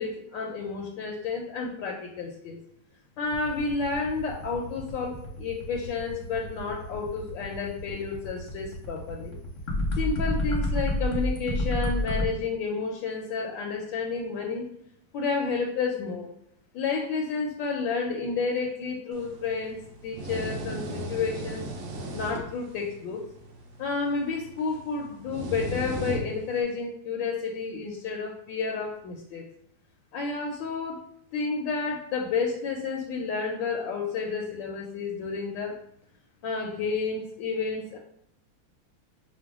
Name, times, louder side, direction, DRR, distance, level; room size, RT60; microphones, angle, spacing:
voice 1, 0.0-2.6 3.2-9.4 9.9-14.7 15.1-16.3 16.7-21.6 22.1-23.2 23.8-29.4 30.1-31.0 31.3-35.8 36.4-38.0, left 4 dB, 75° left, 1 dB, 1.2 m, -31 dB
sound 1, 3.2-12.2, left 1 dB, 55° left, 0.9 m, -30 dB
sound 2, 19.1-26.6, right 1 dB, 85° right, 1.6 m, -37 dB
5.8 x 2.1 x 3.5 m, 0.71 s
omnidirectional pair, 2.3 m